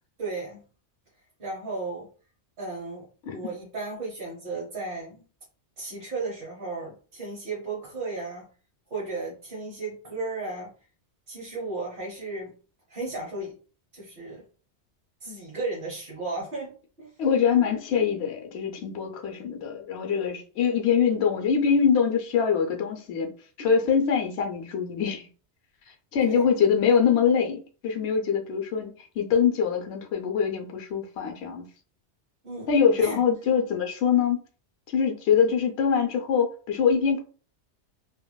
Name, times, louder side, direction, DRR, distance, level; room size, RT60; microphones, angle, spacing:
voice 1, 0.2-0.6 1.4-2.1 2.6-5.2 5.8-8.4 8.9-10.7 11.3-12.5 12.9-13.6 13.9-14.4 15.2-17.1 26.2-26.5 32.4-32.7 33.0-33.2, right 3 dB, 50° right, 1.1 m, -34 dB
voice 2, 17.2-23.3 23.6-25.3 26.1-31.6 32.7-34.4 34.9-37.2, left 7 dB, 70° left, 0.9 m, -24 dB
2.9 x 2.7 x 2.2 m
omnidirectional pair, 1.2 m